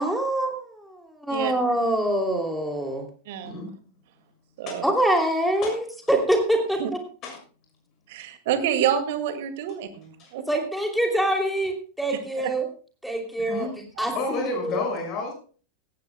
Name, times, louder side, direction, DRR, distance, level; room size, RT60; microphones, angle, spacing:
voice 1, 0.0-3.1 4.8-7.0 10.5-12.7 13.0-13.7 14.0-14.8, right 1 dB, ahead, 3 dB, 2.9 m, -25 dB
voice 2, 3.3-3.6 4.6-4.8 6.8-6.9 8.1-10.4 14.0-14.1, right 9 dB, 50° right, 8 dB, 2.0 m, -28 dB
voice 3, 14.1-15.3, left 3 dB, 35° left, 1 dB, 6.4 m, -30 dB
17.0 x 16.0 x 2.2 m, 0.39 s
figure-of-eight pair, 90°, 0 cm